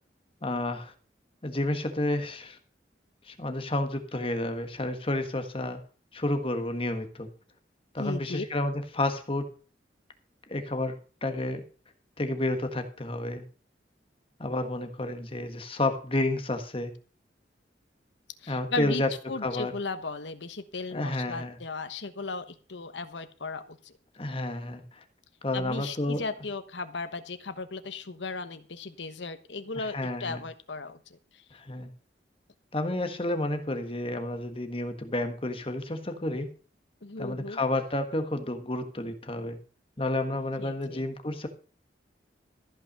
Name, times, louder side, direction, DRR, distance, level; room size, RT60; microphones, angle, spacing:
voice 1, 0.4-0.9 1.4-2.6 3.2-5.8 6.1-7.3 7.9-9.5 10.5-11.6 12.2-13.4 14.4-16.9 18.5-19.7 20.9-21.6 24.1-25.0 25.4-26.2 29.8-30.4 31.5-31.9 32.7-36.5 37.2-39.6 40.0-41.5, left 1 dB, 30° left, 7 dB, 1.5 m, -30 dB
voice 2, 8.0-8.5 18.4-19.0 19.3-23.9 25.5-31.0 37.0-37.6 40.6-41.0, left 3 dB, 80° left, 10 dB, 1.2 m, -36 dB
14.5 x 5.9 x 6.6 m, 0.39 s
head